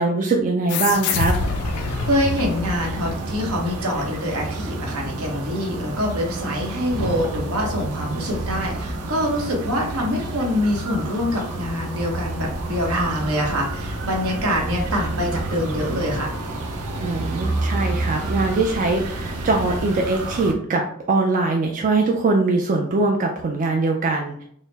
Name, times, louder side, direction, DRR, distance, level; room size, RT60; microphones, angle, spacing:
voice 1, 0.0-1.3 17.0-24.4, right 3 dB, 35° right, 1 dB, 0.4 m, -22 dB
sound 1, 0.7-3.7, left 5 dB, 80° left, 0.4 m, -26 dB
sound 2, 1.3-20.5, right 2 dB, 90° right, 0.6 m, -29 dB
voice 2, 2.1-16.3, equal, 70° right, 0 dB, 1.1 m, -25 dB
4.0 x 2.0 x 3.9 m, 0.66 s
head